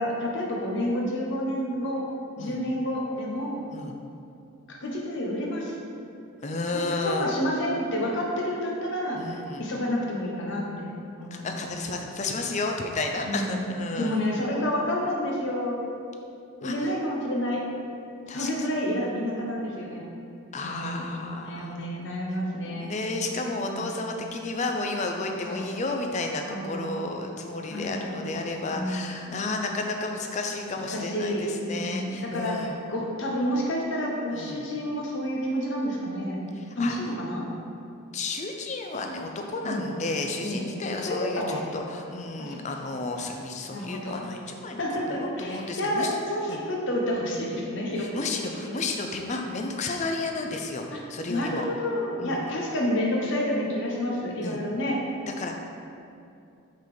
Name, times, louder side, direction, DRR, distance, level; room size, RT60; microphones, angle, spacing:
voice 1, 0.0-2.0 2.4-3.7 4.7-5.8 6.7-11.6 13.2-13.6 14.0-15.8 16.6-17.6 18.3-20.0 20.6-21.0 21.4-22.9 23.4-23.9 25.3-25.6 26.5-26.8 27.7-28.2 28.7-29.4 30.9-36.4 36.8-37.5 39.6-39.9 40.4-40.7 41.1-41.7 42.4-42.6 43.7-44.3 44.8-48.8 50.9-51.0 51.3-55.0, left 1 dB, 55° left, -2 dB, 1.0 m, -29 dB
voice 2, 6.4-7.3 9.2-9.7 11.3-14.3 16.6-16.9 18.3-18.5 20.5-21.8 22.7-32.8 34.3-34.7 36.8-37.0 38.1-44.8 45.1-46.2 46.5-46.6 48.0-51.6 52.2-52.4 54.4-54.6 55.4-55.5, left 2 dB, 30° left, 3 dB, 0.4 m, -32 dB
5.3 x 3.9 x 5.0 m, 2.5 s
head